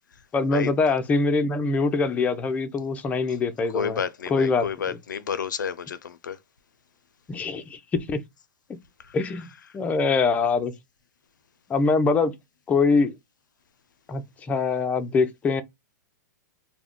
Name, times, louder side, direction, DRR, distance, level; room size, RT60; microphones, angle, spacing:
voice 1, 0.3-4.0 4.3-4.7 7.3-8.2 9.1-9.5 9.7-10.7 11.7-12.3 12.7-13.1 14.1-15.6, left 4 dB, 15° left, 0.4 m, -23 dB
voice 2, 3.7-6.4 9.0-9.2, left 7 dB, 85° left, 0.4 m, -30 dB
2.3 x 2.1 x 3.5 m
hypercardioid pair, 125°, 10 cm